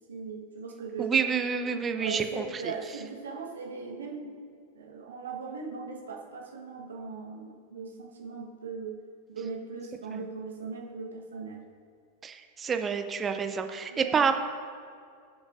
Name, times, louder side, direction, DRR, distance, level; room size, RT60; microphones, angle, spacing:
voice 1, 0.1-1.2 2.0-4.4 4.7-9.0 9.3-11.6 13.9-14.3, right 5 dB, 65° right, 0 dB, 1.2 m, -39 dB
voice 2, 1.0-2.7 10.1-10.2 12.2-14.3, right 6 dB, 20° right, 7 dB, 0.7 m, -28 dB
17.0 x 7.2 x 2.5 m, 2.2 s
figure-of-eight pair, 90°, 0 cm